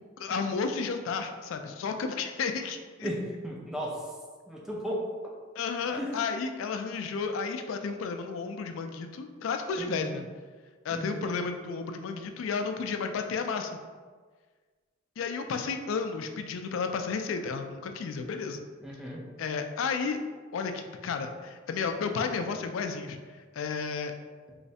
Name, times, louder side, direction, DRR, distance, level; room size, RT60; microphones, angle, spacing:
voice 1, 0.2-3.1 5.6-10.3 10.8-13.8 15.2-18.6 19.4-20.2 20.5-23.2 23.5-24.1, left 5 dB, 70° left, 6 dB, 0.3 m, -32 dB
voice 2, 3.0-4.1 4.5-5.1 5.9-6.1 9.8-10.2 10.9-11.3 18.8-19.2, equal, 5° right, -3 dB, 0.5 m, -35 dB
3.1 x 3.1 x 2.7 m, 1.5 s
head